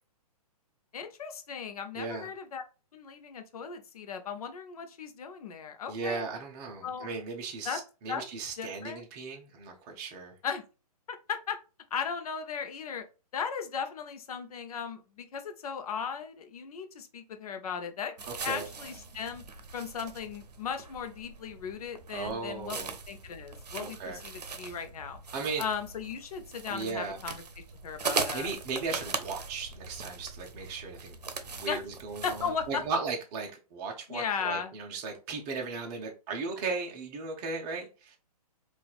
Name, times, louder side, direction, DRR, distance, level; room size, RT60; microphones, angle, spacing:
voice 1, 0.9-2.6 2.9-6.2 6.8-7.1 7.6-7.8 8.1-8.2 8.6-9.0 10.4-10.6 11.1-11.6 11.9-13.0 13.3-18.2 18.4-19.4 19.7-25.2 25.6-28.5 31.7-31.8 32.2-32.8 34.1-34.7, left 6 dB, 70° left, 0.7 m, -37 dB
voice 2, 1.9-2.3 5.9-10.3 18.3-18.7 22.1-22.9 23.8-24.2 25.3-25.6 26.7-27.2 28.3-31.2 31.5-38.2, right 4 dB, 25° right, 0.6 m, -36 dB
sound 1, 18.2-32.9, right 4 dB, 90° right, 0.6 m, -40 dB
4.0 x 2.4 x 2.3 m
hypercardioid pair, 140°, 20 cm